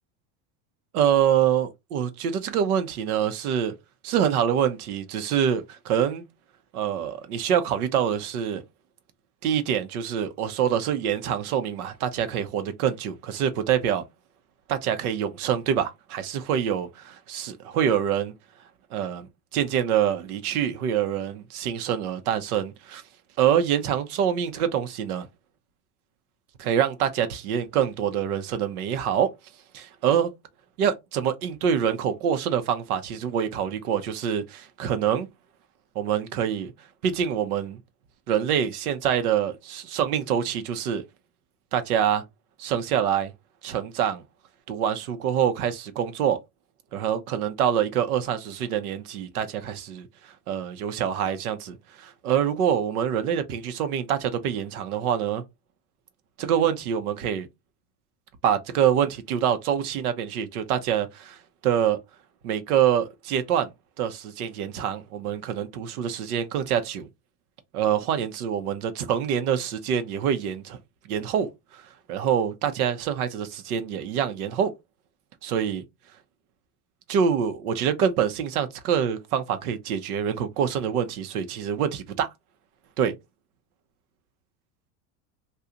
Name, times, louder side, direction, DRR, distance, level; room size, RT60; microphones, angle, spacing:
voice 1, 0.9-3.7 4.0-6.3 6.7-8.6 9.4-14.0 14.7-18.3 18.9-19.3 19.5-23.0 23.4-25.3 26.6-29.3 29.7-30.3 30.8-35.3 35.9-36.7 37.0-37.8 38.3-41.0 41.7-42.2 42.6-43.3 43.6-44.2 44.7-46.4 46.9-50.1 50.5-55.4 56.4-57.5 58.4-61.4 61.6-62.0 62.4-63.7 64.0-67.1 67.7-70.8 71.1-71.8 72.1-74.7 75.4-75.8 77.1-82.3 83.0-83.1, right 8 dB, 85° right, 0.8 m, -25 dB
2.8 x 2.4 x 3.6 m
supercardioid pair, 120°, 43 cm